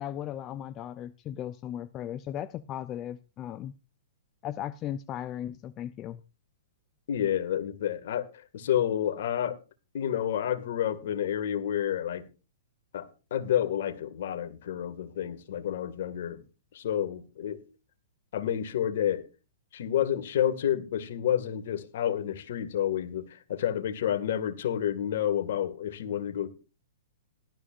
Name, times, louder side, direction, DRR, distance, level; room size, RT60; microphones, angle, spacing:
voice 1, 0.0-3.7 4.4-6.2, left 11 dB, 30° left, 0.6 m, -37 dB
voice 2, 7.1-9.6 9.9-12.2 12.9-16.4 16.7-17.6 18.3-19.3 19.7-26.5, left 10 dB, 65° left, 2.0 m, -29 dB
18.0 x 12.5 x 2.5 m
hypercardioid pair, 120°, 0 cm